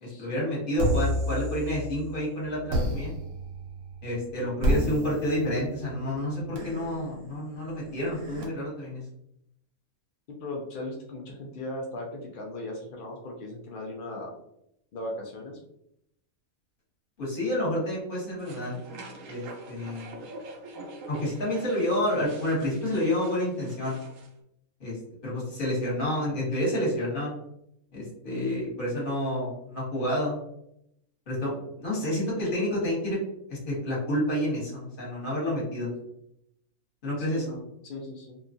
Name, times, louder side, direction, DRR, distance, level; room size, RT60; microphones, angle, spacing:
voice 1, 0.0-3.1 4.0-9.0 17.2-18.8 19.3-20.2 21.1-24.0 24.8-25.0 25.2-27.3 27.9-30.4 31.3-31.5 31.8-33.2 33.5-35.9 37.0-37.5, left 1 dB, 40° left, -5 dB, 1.3 m, -29 dB
sound 1, 0.8-2.1 2.7-8.4, equal, 85° right, 1.2 m, -31 dB
voice 2, 10.3-14.3 14.9-15.6 37.2-38.4, left 1 dB, 70° left, 0 dB, 0.4 m, -38 dB
sound 2, 18.4-24.3, right 2 dB, 70° right, 1.0 m, -44 dB
2.8 x 2.3 x 2.6 m, 0.77 s
omnidirectional pair, 1.5 m